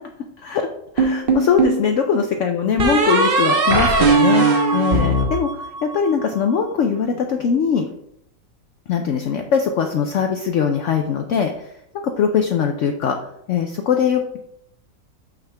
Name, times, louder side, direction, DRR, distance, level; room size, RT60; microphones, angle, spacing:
voice 1, 0.4-0.7 0.9-7.9 8.9-11.7 12.0-13.2 13.5-14.4, left 6 dB, 70° left, 4 dB, 0.7 m, -21 dB
sound 1, 1.0-1.8 2.8-6.1, right 3 dB, 40° right, 0.9 m, -18 dB
6.9 x 5.8 x 3.3 m, 0.76 s
omnidirectional pair, 1.9 m